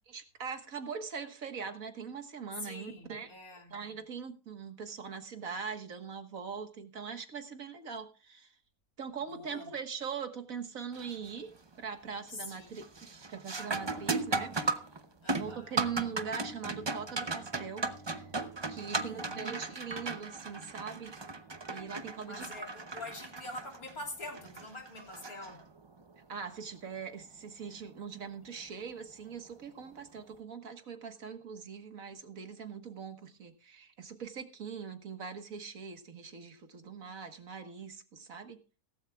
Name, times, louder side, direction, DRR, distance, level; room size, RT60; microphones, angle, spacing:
voice 1, 0.1-3.3 3.7-8.5 9.0-11.5 11.8-14.5 15.4-18.3 18.7-21.2 21.7-22.5 26.3-38.6, right 6 dB, 65° right, 1.9 m, -41 dB
voice 2, 2.6-3.7 9.3-9.7 12.3-12.8 15.2-15.8 18.9-19.4 22.2-25.7, left 2 dB, 70° left, 3.7 m, -45 dB
sound 1, 10.9-11.3 11.7-12.2 12.5-26.0 28.5-28.6 29.5-29.7, right 3 dB, 30° right, 0.5 m, -37 dB
17.0 x 14.5 x 2.4 m
omnidirectional pair, 1.6 m